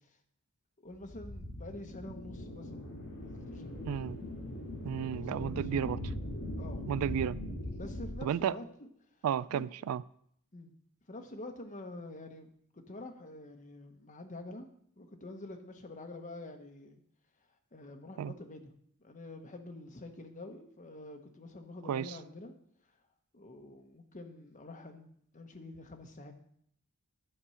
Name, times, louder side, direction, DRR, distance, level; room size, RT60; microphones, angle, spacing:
voice 1, 0.8-2.9 3.2-3.8 5.0-6.1 6.6-6.9 7.7-8.9 9.5-9.7 10.5-10.7 11.1-12.5 12.7-14.7 15.0-17.0 17.7-18.7 19.0-22.5 23.3-26.3, left 2 dB, 35° left, 1.1 m, -47 dB
sound 1, 0.9-8.2, left 1 dB, 60° left, 2.9 m, -41 dB
voice 2, 3.9-4.2 4.8-6.0 6.9-7.4 8.2-8.6 9.2-10.0 18.2-18.3 21.9-22.2, right 9 dB, 70° right, 0.3 m, -32 dB
11.5 x 4.5 x 5.6 m
head